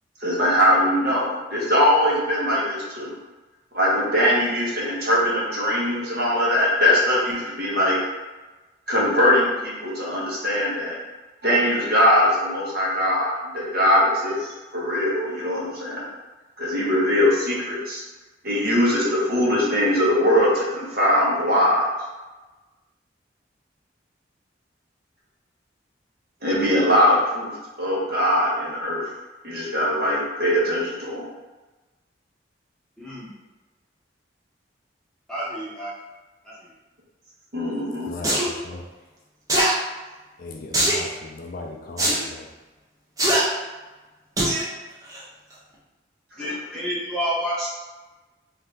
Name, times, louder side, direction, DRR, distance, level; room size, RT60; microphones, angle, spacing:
voice 1, 0.2-3.1 3.7-8.0 8.9-11.0 11.4-16.1 16.6-18.0 18.4-21.9 26.4-29.0 29.4-31.2 37.5-38.1, equal, 55° right, -5 dB, 0.9 m, -21 dB
voice 2, 33.0-33.3 35.3-35.9 36.4-36.5 46.4-47.7, equal, 5° left, -9 dB, 0.9 m, -29 dB
voice 3, 38.1-38.8 40.4-42.5, left 2 dB, 50° left, 1 dB, 0.3 m, -37 dB
sound 1, 38.2-38.5 39.5-39.7 40.7-41.0 42.0-42.2 43.2-43.4 44.4-44.6 45.1-45.2, right 1 dB, 20° right, 0.6 m, -20 dB
2.7 x 2.5 x 3.3 m, 1.2 s
head